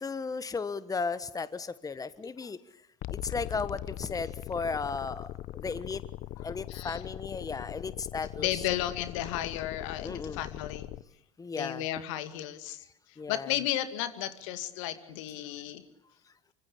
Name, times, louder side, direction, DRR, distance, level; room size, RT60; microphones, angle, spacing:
voice 1, 0.0-2.6 3.1-6.0 6.4-8.6 10.0-10.4 11.4-11.8 13.2-13.5, left 4 dB, 20° left, 15 dB, 1.3 m, -35 dB
sound 1, 3.0-11.0, left 14 dB, 55° left, 1.1 m, -40 dB
voice 2, 6.4-7.0 8.4-10.9 11.5-15.8, left 12 dB, 70° left, 10 dB, 2.3 m, -34 dB
25.5 x 24.5 x 8.6 m, 0.71 s
hypercardioid pair, 65°, 17 cm